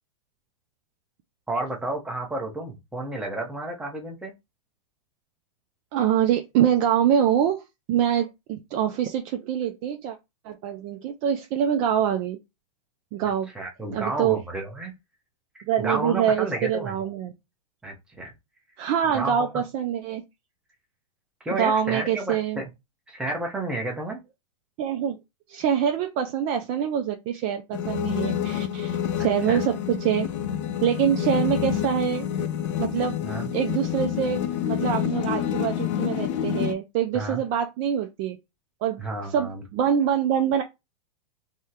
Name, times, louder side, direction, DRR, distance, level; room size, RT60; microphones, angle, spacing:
voice 1, 1.5-4.3 13.5-14.9 15.5-17.0 17.8-18.3 19.1-19.5 21.4-22.7 23.1-24.2 29.2-29.6 31.3-31.4 33.2-33.5 37.1-37.4 39.0-39.6, right 2 dB, 5° right, 0.7 m, -31 dB
voice 2, 5.9-7.6 7.9-10.2 10.4-12.4 13.1-13.5 13.9-14.4 15.7-17.3 18.8-20.2 21.6-22.6 24.8-25.2 25.5-30.3 30.8-32.3 32.8-33.2 33.5-38.4 38.8-40.6, right 9 dB, 30° right, 0.3 m, -25 dB
sound 1, 27.7-36.7, left 10 dB, 55° left, 0.5 m, -28 dB
3.5 x 2.1 x 2.8 m
hypercardioid pair, 140°, 18 cm